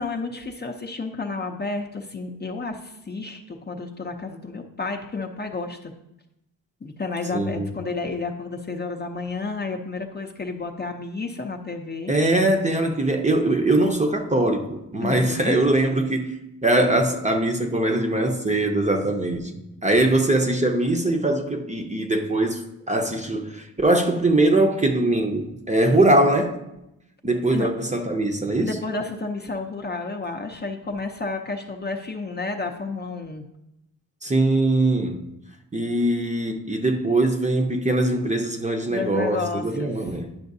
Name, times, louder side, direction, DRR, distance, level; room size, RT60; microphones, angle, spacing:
voice 1, 0.0-5.9 6.8-12.1 15.0-15.6 27.5-27.7 28.6-33.4 38.9-39.9, left 3 dB, 30° left, 0.6 m, -31 dB
voice 2, 7.3-7.7 12.1-16.4 16.6-22.6 22.9-26.6 27.2-28.7 34.2-35.3 35.7-40.3, right 2 dB, 20° right, 0.7 m, -22 dB
10.5 x 5.6 x 2.7 m
cardioid pair, 95°, 37 cm